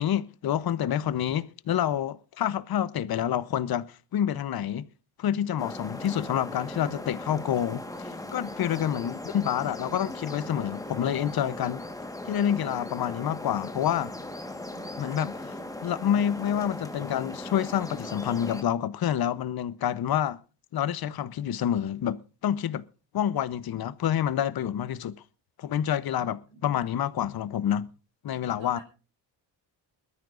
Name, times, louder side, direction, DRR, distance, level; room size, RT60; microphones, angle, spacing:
voice 1, 0.0-4.8 5.2-11.8 12.3-14.1 15.0-15.3 15.8-20.4 20.7-22.8 23.1-25.2 25.6-27.9 28.2-28.8, left 10 dB, 55° left, 0.9 m, -28 dB
sound 1, 5.6-18.6, left 1 dB, 10° left, 1.5 m, -38 dB
voice 2, 9.5-10.0 14.7-15.3 26.2-26.9 28.6-28.8, right 3 dB, 85° right, 4.0 m, -50 dB
21.0 x 13.5 x 2.6 m
cardioid pair, 100°, 44 cm